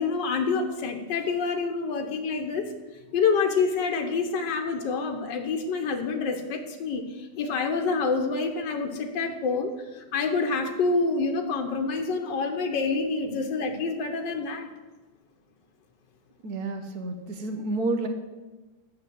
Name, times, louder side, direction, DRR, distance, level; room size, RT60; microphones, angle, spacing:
voice 1, 0.0-2.6 3.1-14.7, left 4 dB, 85° left, 4 dB, 1.6 m, -27 dB
voice 2, 16.4-18.1, right 2 dB, 65° right, 6 dB, 1.4 m, -30 dB
7.6 x 6.9 x 7.3 m, 1.2 s
omnidirectional pair, 1.9 m